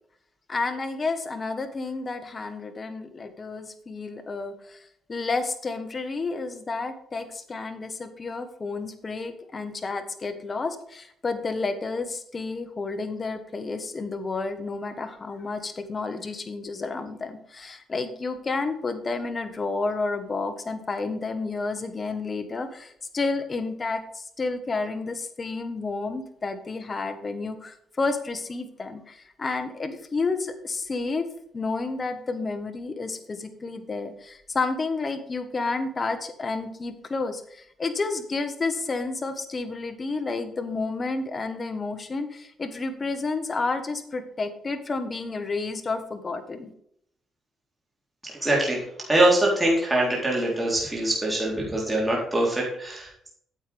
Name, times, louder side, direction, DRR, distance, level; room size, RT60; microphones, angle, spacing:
voice 1, 0.5-4.8 5.1-31.3 31.5-46.7, left 3 dB, 35° left, 9 dB, 1.4 m, -30 dB
voice 2, 48.2-53.3, right 1 dB, 10° right, -4 dB, 3.7 m, -24 dB
9.5 x 7.9 x 3.5 m, 0.70 s
cardioid pair, 90°, 0 cm